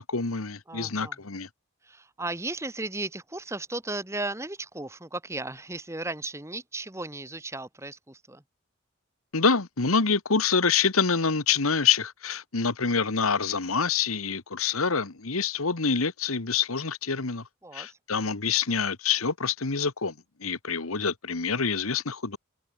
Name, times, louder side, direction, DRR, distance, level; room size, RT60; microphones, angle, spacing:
voice 1, 0.0-1.5 9.3-17.4 17.7-20.1 20.4-22.4, left 5 dB, 85° left, 1.6 m, -26 dB
voice 2, 0.7-1.2 1.8-8.4 17.6-18.0, right 2 dB, 15° right, 1.4 m, -35 dB
head